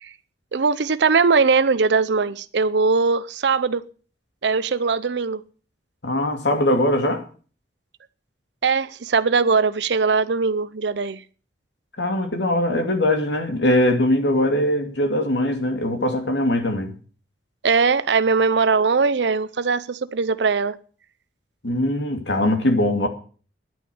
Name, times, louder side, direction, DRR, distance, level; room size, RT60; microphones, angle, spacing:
voice 1, 0.5-3.8 4.4-5.4 8.6-11.2 17.6-20.8, right 4 dB, 75° right, 0.6 m, -20 dB
voice 2, 6.0-7.2 12.0-16.9 21.6-23.1, left 1 dB, 80° left, 2.5 m, -21 dB
10.5 x 9.2 x 7.6 m
head